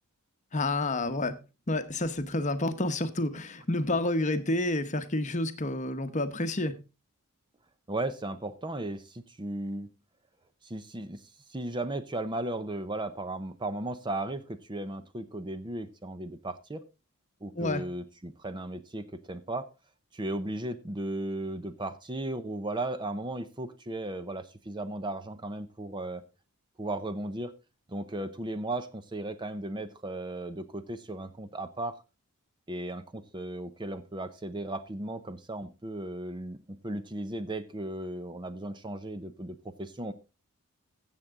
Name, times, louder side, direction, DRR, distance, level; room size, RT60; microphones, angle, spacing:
voice 1, 0.5-1.4 1.7-6.8 17.5-17.8, left 2 dB, 35° left, 0.9 m, -29 dB
voice 2, 7.9-9.9 10.6-16.8 17.4-19.7 20.1-26.2 26.8-27.5 27.9-32.0 32.7-40.1, right 2 dB, 20° right, 0.6 m, -36 dB
14.5 x 7.4 x 3.6 m
head